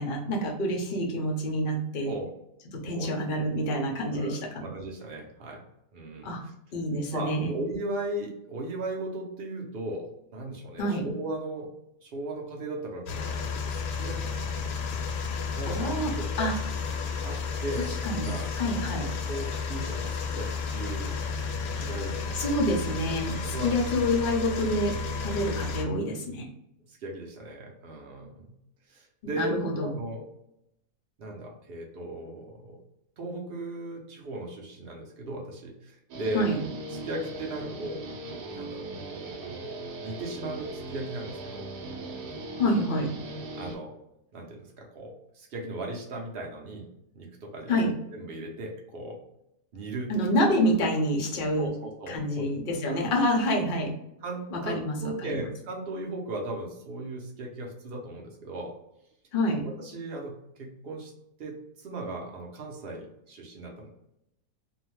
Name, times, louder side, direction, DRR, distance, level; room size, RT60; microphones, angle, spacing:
voice 1, 0.0-2.1 2.7-4.6 6.2-6.4 6.7-7.5 10.8-11.1 15.7-16.1 16.4-16.5 17.9-18.3 18.6-19.1 22.3-26.4 29.2-29.9 36.3-36.6 42.6-43.1 47.7-47.9 50.1-51.7 52.1-53.9 54.5-55.4 59.3-59.6, left 1 dB, 60° left, 0 dB, 0.5 m, -27 dB
voice 2, 4.1-5.7 5.9-6.5 7.1-11.7 12.0-14.4 14.9-15.0 15.5-16.5 17.2-18.5 19.3-21.2 21.8-22.9 23.5-23.7 24.1-24.2 26.9-28.5 28.9-29.5 29.8-30.2 31.2-32.8 33.2-36.5 37.0-38.1 38.5-38.9 39.5-41.7 43.5-43.9 44.3-46.9 47.1-47.8 48.1-49.2 49.7-50.1 51.6-52.5 52.9-53.1 54.2-58.7 59.6-61.1 61.4-63.9, right 2 dB, 60° right, 0 dB, 0.6 m, -37 dB
sound 1, 13.1-25.8, left 4 dB, 85° left, 1.2 m, -32 dB
Guitar, 36.1-43.8, right 2 dB, 85° right, 1.2 m, -39 dB
2.7 x 2.1 x 3.0 m, 0.81 s
omnidirectional pair, 1.7 m